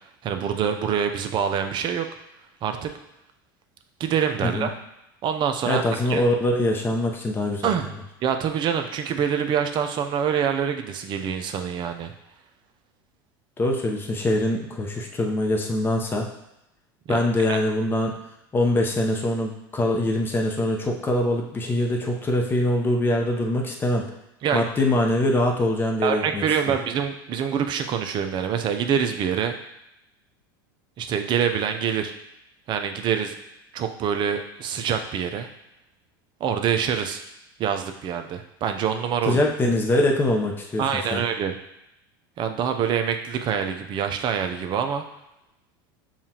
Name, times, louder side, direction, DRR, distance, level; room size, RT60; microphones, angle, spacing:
voice 1, 0.2-2.1 2.6-2.9 4.0-4.7 5.2-6.2 7.6-7.9 8.2-12.1 17.1-17.2 17.5-17.6 24.4-24.7 26.0-29.5 31.0-32.1 32.7-33.3 33.7-35.5 36.4-37.2 37.6-39.4 40.8-41.6 42.4-45.0, right 8 dB, 40° right, 6 dB, 0.5 m, -25 dB
voice 2, 5.7-7.7 13.6-16.3 17.1-18.1 18.5-24.1 24.5-26.7 39.3-41.2, left 1 dB, 20° left, 1 dB, 0.7 m, -23 dB
7.2 x 2.4 x 2.8 m, 0.87 s
hypercardioid pair, 100°, 12 cm